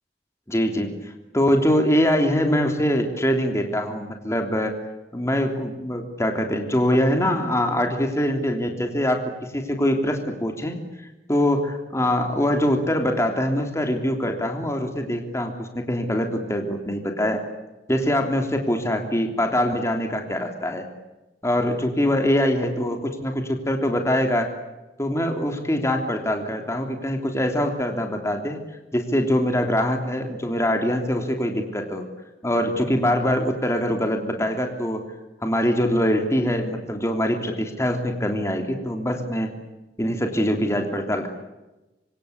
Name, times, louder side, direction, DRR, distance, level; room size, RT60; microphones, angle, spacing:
voice 1, 0.5-4.8 5.1-10.8 11.3-17.4 17.9-20.9 21.4-24.5 25.0-28.6 28.9-32.1 32.4-35.0 35.4-39.5 40.0-41.3, equal, 15° left, 4 dB, 3.3 m, -23 dB
26.0 x 25.0 x 8.5 m, 1.0 s
head